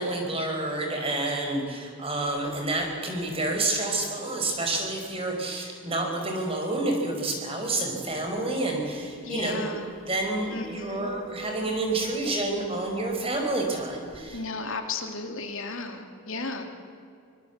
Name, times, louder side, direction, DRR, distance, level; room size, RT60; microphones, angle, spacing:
voice 1, 0.0-9.7 10.1-14.4, right 2 dB, 25° right, 2 dB, 5.1 m, -29 dB
sound 1, 8.1-8.2 8.6-8.7 9.2-13.5 14.1-14.2, right 5 dB, ahead, 4.2 m, -47 dB
voice 2, 9.2-9.9 10.5-11.1 14.3-16.6, left 3 dB, 70° left, 5 dB, 2.9 m, -34 dB
23.5 x 23.5 x 8.2 m, 2.4 s
head